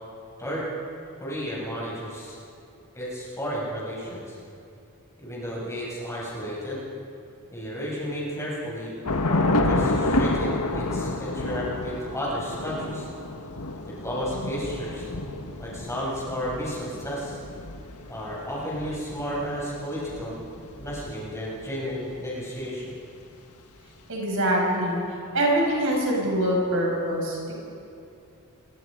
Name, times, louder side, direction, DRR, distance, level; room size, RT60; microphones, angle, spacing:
voice 1, 1.2-2.4 2.9-4.4 5.2-6.8 7.5-8.9 9.3-13.1 13.9-15.1 15.6-17.4 18.1-20.4 20.7-22.9, equal, 15° left, -6 dB, 7.2 m, -32 dB
Thunder / Rain, 9.1-21.6, left 2 dB, 90° left, 1.7 m, -29 dB
voice 2, 24.1-25.0 25.3-27.6, right 1 dB, 65° right, -2 dB, 6.6 m, -24 dB
28.5 x 23.0 x 5.3 m, 2.6 s
head